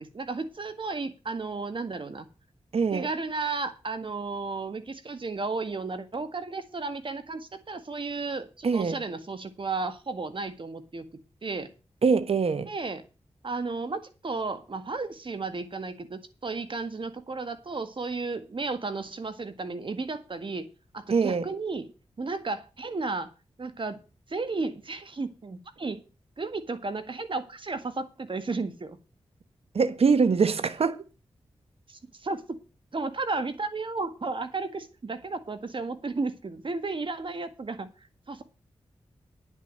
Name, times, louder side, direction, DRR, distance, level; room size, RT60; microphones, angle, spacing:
voice 1, 0.0-2.3 2.9-11.1 11.4-11.7 12.7-13.0 13.4-20.7 20.9-21.9 22.2-23.3 23.6-24.0 24.3-26.0 26.4-29.0 31.9-32.6 32.9-37.9 38.3-38.4, right 3 dB, 50° right, 1.8 m, -33 dB
voice 2, 2.7-3.1 8.6-9.0 12.0-12.7 21.1-21.4 29.7-31.0, right 5 dB, 70° right, 1.1 m, -23 dB
10.5 x 6.5 x 7.7 m
cardioid pair, 50°, 11 cm